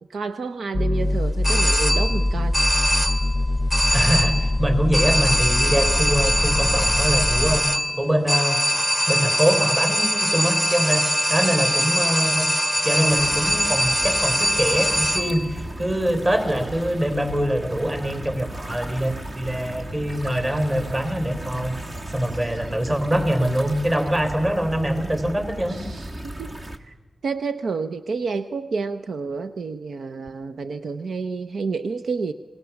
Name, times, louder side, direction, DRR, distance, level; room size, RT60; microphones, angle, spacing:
voice 1, 0.1-3.1 25.7-26.9 27.2-32.3, right 4 dB, 80° right, 10 dB, 0.7 m, -30 dB
sound 1, 0.7-7.6, left 2 dB, 10° left, 0.8 m, -23 dB
sound 2, 1.4-2.3 2.5-3.4 3.7-4.5 4.9-15.5, equal, 10° right, 1.2 m, -22 dB
voice 2, 3.9-8.6 9.1-12.5 12.8-21.8 22.1-25.8, equal, 30° right, 7 dB, 3.5 m, -24 dB
sound 3, 13.1-26.8, right 1 dB, 45° right, 1.7 m, -35 dB
27.0 x 19.0 x 7.1 m, 1.1 s
wide cardioid pair, 80°, 0 cm